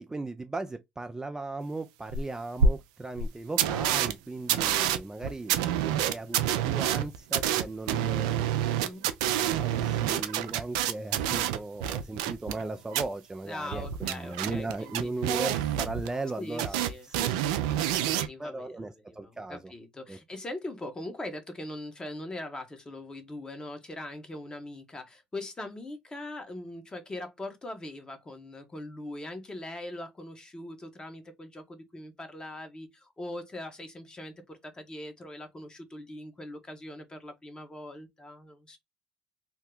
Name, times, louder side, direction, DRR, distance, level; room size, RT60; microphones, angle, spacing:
voice 1, 0.0-8.5 9.2-16.8 17.1-17.3 18.4-19.7 20.1-20.2, right 2 dB, 15° right, 0.4 m, -37 dB
sound 1, 2.1-2.2 2.6-2.7 3.2-3.3 3.6-4.1 4.5-12.6 12.9-13.0 13.7-16.3 16.6-18.3, right 9 dB, 85° right, 0.4 m, -27 dB
voice 2, 13.4-15.1 16.4-38.8, left 1 dB, 25° left, 1.1 m, -41 dB
2.8 x 2.2 x 3.7 m
hypercardioid pair, 65°, 4 cm